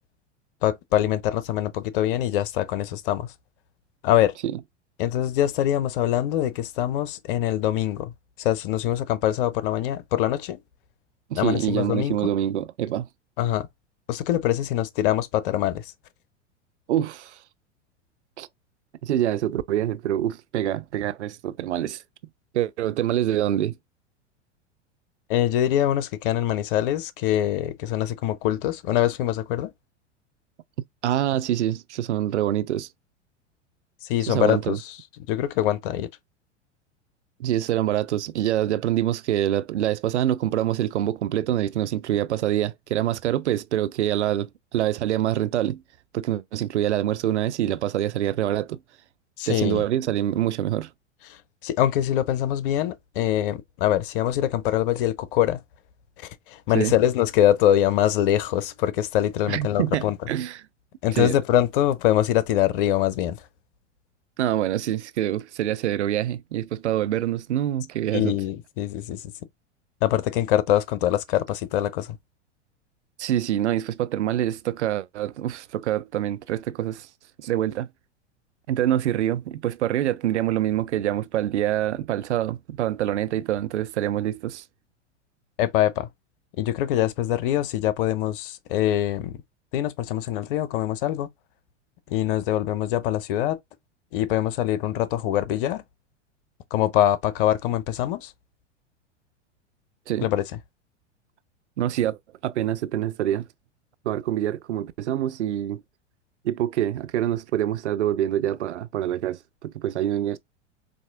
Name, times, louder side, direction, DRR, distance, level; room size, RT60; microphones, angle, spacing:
voice 1, 0.6-3.3 4.0-4.3 5.0-8.1 8.4-10.6 11.3-12.3 13.4-13.7 14.1-15.9 25.3-29.7 34.0-35.0 35.3-36.1 49.4-49.8 51.3-51.4 51.6-55.6 56.2-60.2 61.0-63.4 68.1-69.3 70.0-72.2 85.6-86.1 86.6-89.4 89.7-91.3 92.1-93.6 94.1-95.8 96.7-98.3 100.2-100.4, left 12 dB, 50° left, 0.6 m, -24 dB
voice 2, 11.3-13.1 16.9-17.4 18.4-18.5 19.0-22.0 22.5-23.7 31.0-32.9 34.3-34.8 37.4-45.8 46.1-48.8 49.5-50.9 56.7-56.9 59.5-60.6 61.2-61.3 64.4-68.3 73.2-77.1 77.4-77.9 78.7-84.6 100.1-100.3 101.8-102.2 102.4-103.5 104.1-105.8 106.4-110.4, right 12 dB, 70° right, 0.5 m, -25 dB
4.1 x 2.6 x 2.4 m
figure-of-eight pair, 90°, 36 cm